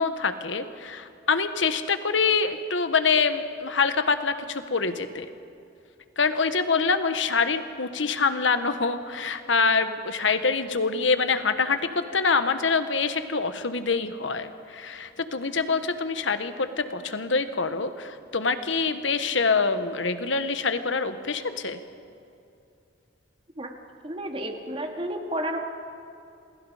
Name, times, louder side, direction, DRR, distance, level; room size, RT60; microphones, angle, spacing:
voice 1, 0.0-5.3 6.2-21.8, left 4 dB, 80° left, 10 dB, 1.3 m, -25 dB
voice 2, 24.0-25.6, right 1 dB, 30° right, 4 dB, 2.1 m, -31 dB
28.0 x 21.5 x 5.0 m, 2.6 s
head